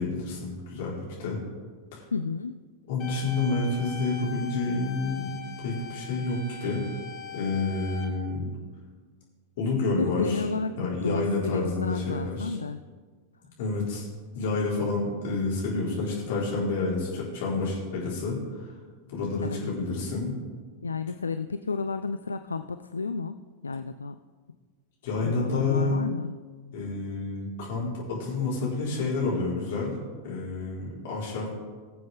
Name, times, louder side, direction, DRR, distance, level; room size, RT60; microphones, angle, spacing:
voice 1, 0.0-1.4 1.9-2.0 2.9-5.3 5.6-6.9 7.3-8.5 9.6-10.4 10.8-12.6 13.6-14.1 14.3-18.7 19.1-20.3 25.0-26.0 26.7-29.9 30.2-31.5, left 3 dB, 55° left, -5 dB, 4.5 m, -29 dB
voice 2, 2.1-2.6 10.0-12.8 19.4-19.7 20.8-24.2 25.2-26.3, left 4 dB, 75° left, 10 dB, 0.4 m, -32 dB
sound 1, 3.0-8.0, left 7 dB, 30° left, 2.5 m, -41 dB
22.0 x 7.6 x 3.7 m, 1.5 s
figure-of-eight pair, 90°, 0 cm